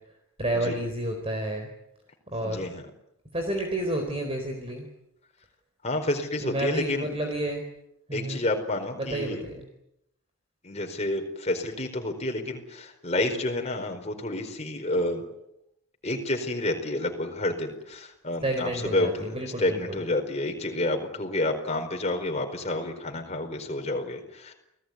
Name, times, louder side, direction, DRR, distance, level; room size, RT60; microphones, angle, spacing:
voice 1, 0.4-1.7 2.3-2.7 3.3-4.9 6.4-7.7 8.1-8.4 9.1-9.5 18.4-20.0, right 1 dB, 25° right, 4 dB, 4.1 m, -30 dB
voice 2, 2.4-2.9 5.8-7.1 8.1-9.4 10.6-15.2 16.0-24.5, left 1 dB, 30° left, 4 dB, 4.6 m, -29 dB
29.5 x 18.5 x 9.5 m, 0.83 s
head